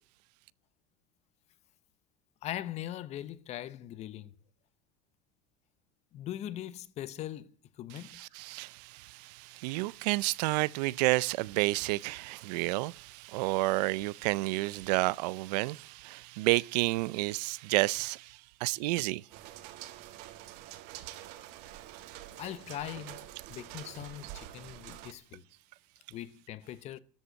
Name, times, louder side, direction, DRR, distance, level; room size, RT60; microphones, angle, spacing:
voice 1, 2.4-4.3 6.1-7.5 7.8-8.2 22.3-25.4 26.1-27.0, left 12 dB, 35° left, 0.9 m, -41 dB
voice 2, 7.9-19.2, right 21 dB, 85° right, 0.6 m, -30 dB
sound 1, 19.3-25.1, right 14 dB, 55° right, 1.6 m, -47 dB
13.0 x 8.2 x 10.0 m
cardioid pair, 170°, 20 cm